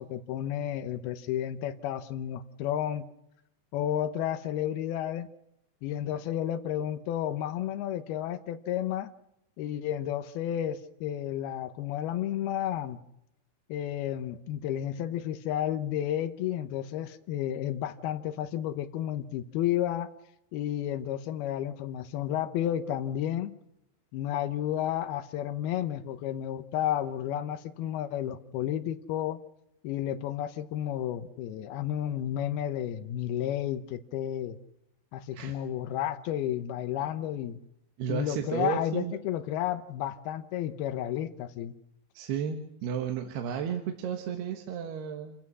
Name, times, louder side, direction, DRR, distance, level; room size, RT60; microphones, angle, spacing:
voice 1, 0.0-3.1 3.7-5.3 5.8-9.1 9.6-13.0 13.7-20.1 20.5-23.6 24.1-29.4 29.8-34.6 35.1-37.6 38.1-41.7, left 11 dB, 80° left, 10 dB, 2.2 m, -32 dB
voice 2, 38.0-39.2 42.1-45.3, right 8 dB, 65° right, 4 dB, 3.0 m, -33 dB
28.0 x 15.5 x 6.2 m, 0.83 s
omnidirectional pair, 5.8 m